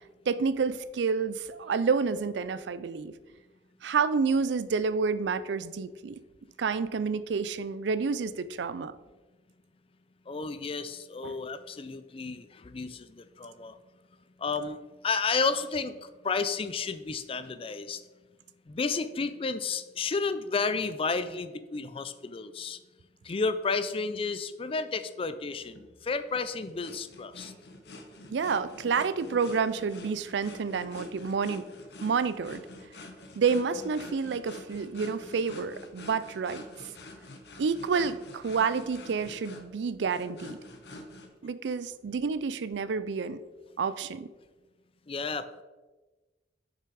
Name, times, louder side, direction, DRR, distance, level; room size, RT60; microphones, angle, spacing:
voice 1, 0.3-3.1 3.8-6.2 6.6-8.9 11.2-11.4 28.3-31.6 32.0-32.6 33.4-36.6 37.6-40.6 41.4-43.4 43.8-44.3, right 5 dB, 85° right, 15 dB, 0.4 m, -29 dB
voice 2, 10.3-13.8 14.4-14.8 15.0-18.0 18.7-22.8 23.2-27.5 45.1-45.6, left 4 dB, 30° left, 12 dB, 0.4 m, -32 dB
sound 1, 25.6-41.3, left 2 dB, 65° left, 1.1 m, -47 dB
6.7 x 5.9 x 4.7 m, 1.2 s
head